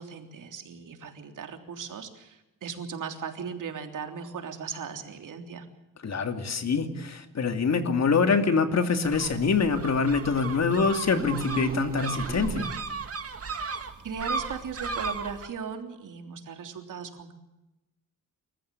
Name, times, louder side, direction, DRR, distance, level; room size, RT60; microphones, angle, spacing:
voice 1, 0.0-5.7 14.0-17.3, right 6 dB, 70° right, 5 dB, 3.4 m, -37 dB
voice 2, 6.0-12.7, left 5 dB, 55° left, 7 dB, 2.7 m, -25 dB
sound 1, 9.0-15.5, right 4 dB, 45° right, 2.3 m, -35 dB
sound 2, 11.1-13.1, right 4 dB, 25° right, 1.4 m, -36 dB
28.5 x 14.5 x 8.4 m, 0.97 s
cardioid pair, 80°, 33 cm